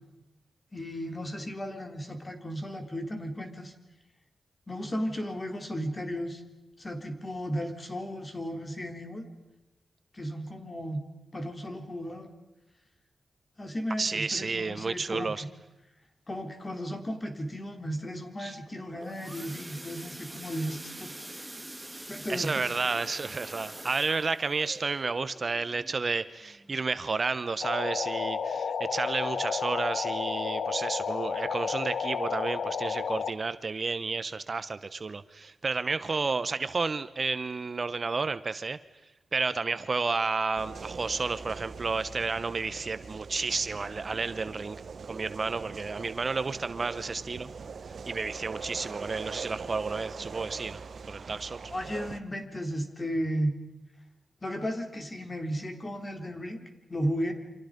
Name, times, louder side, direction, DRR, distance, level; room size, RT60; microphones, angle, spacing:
voice 1, 0.7-3.7 4.7-6.4 6.8-9.3 10.1-11.0 11.3-12.3 13.6-15.5 16.3-21.2 22.1-22.7 51.7-53.6 54.4-56.6 56.9-57.3, equal, 30° left, 5 dB, 4.0 m, -34 dB
voice 2, 14.0-15.4 18.4-18.6 22.3-38.8 39.3-44.8 45.1-47.5 48.1-51.6, right 4 dB, 45° right, 13 dB, 1.0 m, -31 dB
sound 1, 18.7-27.3 27.8-28.0 28.3-28.4 28.9-29.0, right 1 dB, 15° right, 1.7 m, -45 dB
sound 2, 27.6-33.3, left 6 dB, 85° left, 1.1 m, -31 dB
sound 3, 40.6-52.2, right 5 dB, 70° right, 1.1 m, -42 dB
29.5 x 26.0 x 5.3 m, 1.0 s
cardioid pair, 80°, 0 cm